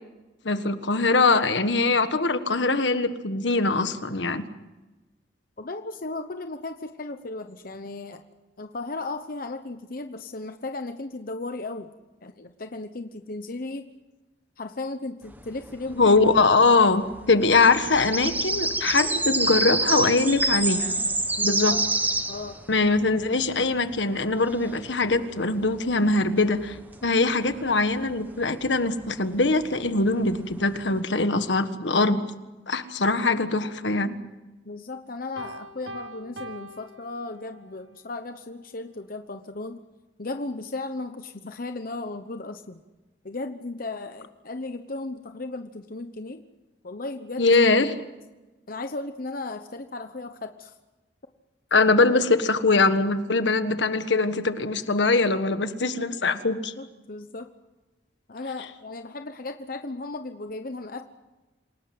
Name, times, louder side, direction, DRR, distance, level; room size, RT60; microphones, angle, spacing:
voice 1, 0.4-4.4 16.0-20.9 21.4-21.8 22.7-26.8 27.0-32.3 32.7-34.2 47.4-47.9 51.7-56.7, left 3 dB, 75° left, 10 dB, 1.5 m, -22 dB
voice 2, 5.6-8.2 8.6-11.9 12.2-13.9 14.6-16.0 21.4-21.8 22.3-22.6 34.6-39.8 40.2-42.8 43.2-46.4 46.8-47.5 48.7-50.8 56.8-57.5 58.3-61.0, left 2 dB, 50° left, 8 dB, 1.0 m, -35 dB
sound 1, 15.3-31.0, right 2 dB, 10° right, 1.5 m, -29 dB
Piano, 35.4-37.8, right 1 dB, 90° right, 1.7 m, -42 dB
28.0 x 18.0 x 7.9 m, 1.1 s
head